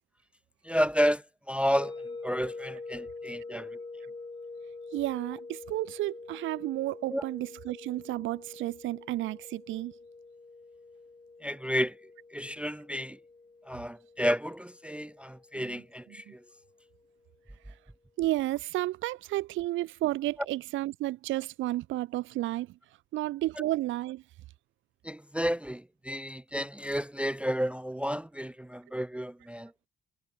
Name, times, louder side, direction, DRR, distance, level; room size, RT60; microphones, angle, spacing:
voice 1, 0.6-1.9 2.2-3.7 7.1-7.2 11.4-11.9 12.3-13.2 13.7-16.4 25.0-29.9, equal, 5° right, 0.5 m, -31 dB
sound 1, 1.8-16.7, left 3 dB, 25° left, 5.3 m, -46 dB
voice 2, 4.9-9.9 15.6-15.8 16.3-16.4 17.7-17.8 18.2-22.8 23.1-24.2, right 16 dB, 75° right, 0.5 m, -32 dB
cardioid pair, 90°, 20 cm